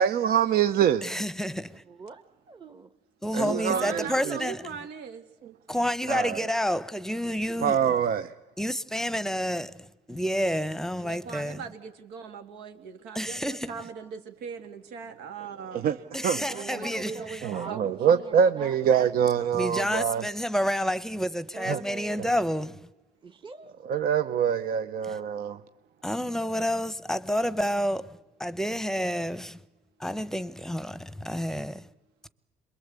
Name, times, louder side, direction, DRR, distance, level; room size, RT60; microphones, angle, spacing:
voice 1, 0.0-1.1 3.3-4.4 5.4-5.5 6.1-6.5 7.6-8.3 15.7-16.0 16.2-16.4 17.4-20.3 21.7-21.8 22.2-22.3 23.8-25.6, right 8 dB, 60° right, 0.9 m, -25 dB
voice 2, 1.0-1.7 3.2-4.6 5.7-7.8 8.6-9.7 10.1-11.6 13.2-13.7 16.1-17.1 19.5-22.8 26.0-28.1 28.4-29.6 30.0-31.8, equal, 5° left, 0.9 m, -29 dB
voice 3, 1.7-2.9 16.0-18.8 21.5-22.2 23.2-23.7, right 4 dB, 30° right, 1.4 m, -43 dB
voice 4, 3.4-5.2 11.0-15.8 16.5-18.2, right 6 dB, 90° right, 3.0 m, -39 dB
27.5 x 22.0 x 8.3 m
cardioid pair, 110°, 17 cm